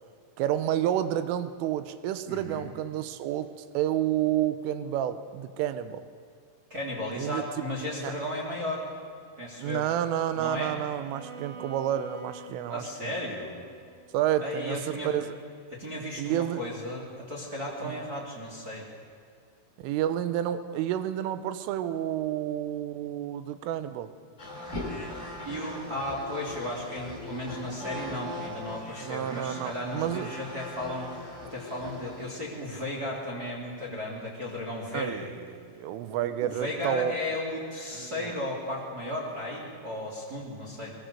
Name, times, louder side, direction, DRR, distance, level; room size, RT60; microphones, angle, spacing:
voice 1, 0.4-3.5 3.8-6.0 7.2-7.4 8.0-8.1 9.6-13.1 14.1-15.3 16.2-16.6 17.8-18.0 19.8-24.1 29.0-30.3 34.9-37.2 37.9-38.4, right 11 dB, 85° right, 11 dB, 3.5 m, -30 dB
voice 2, 2.3-2.7 6.7-8.9 9.4-9.9 10.3-10.8 12.7-13.6 14.4-15.1 15.7-18.9 25.4-35.3 36.1-40.9, left 1 dB, 20° right, -2 dB, 3.0 m, -35 dB
Bowed string instrument, 11.0-15.0, right 3 dB, 60° right, 4.0 m, -48 dB
sound 1, 24.4-32.3, left 1 dB, 15° left, 3.6 m, -40 dB
22.5 x 22.0 x 6.8 m, 2.2 s
omnidirectional pair, 5.8 m